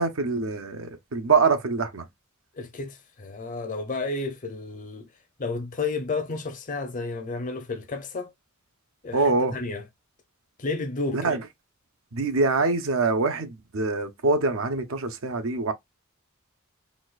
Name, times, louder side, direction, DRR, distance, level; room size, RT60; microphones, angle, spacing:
voice 1, 0.0-2.0 9.1-9.5 11.1-11.4 12.1-15.7, right 3 dB, 70° right, 0.7 m, -24 dB
voice 2, 2.5-5.1 5.4-8.3 9.0-9.8 10.6-11.3, left 3 dB, 40° left, 0.7 m, -32 dB
4.2 x 2.4 x 2.4 m
head